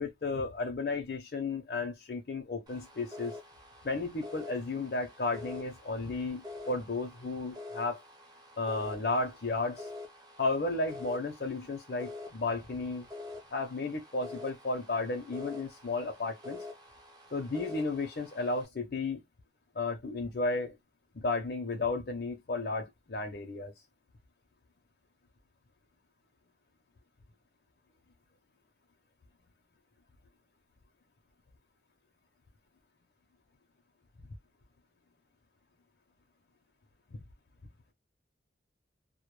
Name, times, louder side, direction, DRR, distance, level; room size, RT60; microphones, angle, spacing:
voice 1, 0.0-3.3 3.8-8.0 8.6-9.9 10.4-13.1 13.5-16.6 17.3-19.2 19.8-20.7 21.1-23.7, left 3 dB, 60° left, 0.5 m, -33 dB
sound 1, 2.7-18.7, left 2 dB, 20° right, 0.6 m, -47 dB
2.1 x 2.1 x 3.0 m
head